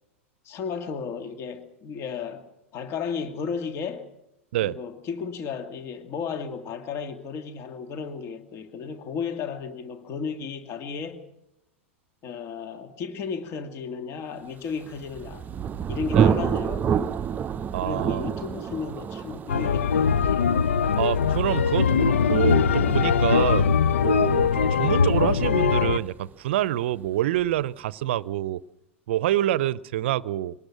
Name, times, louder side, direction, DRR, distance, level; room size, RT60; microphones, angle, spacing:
voice 1, 0.4-2.5 2.7-4.1 4.6-11.3 12.2-15.5 15.9-17.2 17.8-20.5, left 6 dB, 40° left, 2.4 m, -34 dB
Thunder, 14.8-26.3, right 7 dB, 25° right, 0.7 m, -29 dB
voice 2, 17.7-18.3 20.9-23.7 24.0-28.6 29.1-30.5, right 13 dB, 60° right, 0.7 m, -26 dB
sound 1, 19.5-26.0, left 6 dB, 70° left, 0.9 m, -21 dB
25.0 x 19.5 x 6.2 m
figure-of-eight pair, 95°, 7 cm